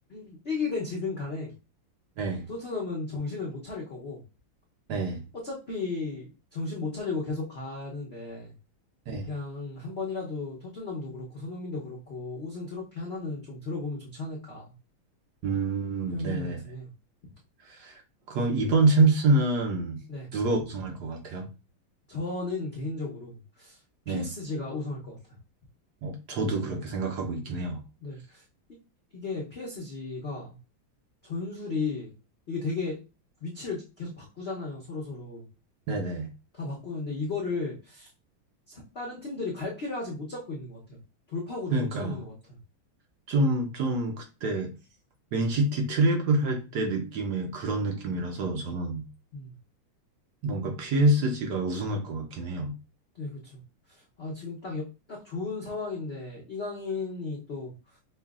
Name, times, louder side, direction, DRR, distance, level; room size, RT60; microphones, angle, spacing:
voice 1, 0.1-1.5 2.5-4.2 5.4-8.5 9.3-14.7 16.1-16.9 20.1-20.3 22.1-23.8 24.1-25.2 28.0-28.4 29.1-30.6 31.2-32.1 32.5-33.0 33.4-35.4 36.5-38.1 38.7-41.0 41.3-42.6 49.3-49.5 53.1-53.6 53.9-58.0, left 3 dB, 85° left, -2 dB, 0.5 m, -35 dB
voice 2, 4.9-5.2 9.1-9.3 15.4-16.6 17.6-18.0 18.3-20.0 20.3-21.5 24.1-24.3 26.0-27.8 35.9-36.3 41.7-42.2 43.3-44.7 45.3-49.0 50.4-52.8, right 2 dB, 65° right, 2 dB, 1.0 m, -27 dB
5.5 x 2.4 x 2.3 m, 0.31 s
omnidirectional pair, 2.3 m